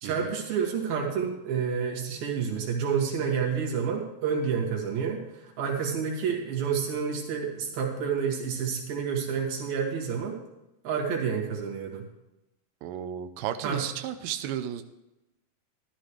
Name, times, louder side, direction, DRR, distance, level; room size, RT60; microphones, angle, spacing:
voice 1, 0.0-10.4 10.8-12.0 13.6-13.9, right 6 dB, 70° right, 0 dB, 3.6 m, -29 dB
voice 2, 12.8-14.8, right 10 dB, 85° right, 7 dB, 2.0 m, -33 dB
13.5 x 13.0 x 3.2 m, 0.92 s
omnidirectional pair, 4.5 m